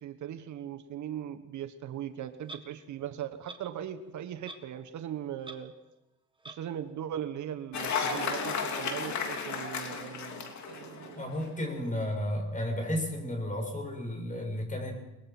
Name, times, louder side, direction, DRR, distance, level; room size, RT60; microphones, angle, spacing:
voice 1, 0.0-5.7 6.5-11.2 11.8-11.9, right 10 dB, 70° right, 10 dB, 1.3 m, -39 dB
Clock, 2.4-2.6 3.5-3.6 4.5-4.7 5.0-5.1 5.4-5.6 6.4-6.6, right 2 dB, 15° right, 1.9 m, -44 dB
Cheering / Applause, 7.7-11.4, left 5 dB, 65° left, 3.0 m, -34 dB
voice 2, 11.1-15.1, left 1 dB, 25° left, 3 dB, 6.8 m, -33 dB
22.5 x 20.5 x 6.0 m, 0.99 s
cardioid pair, 90°, 30 cm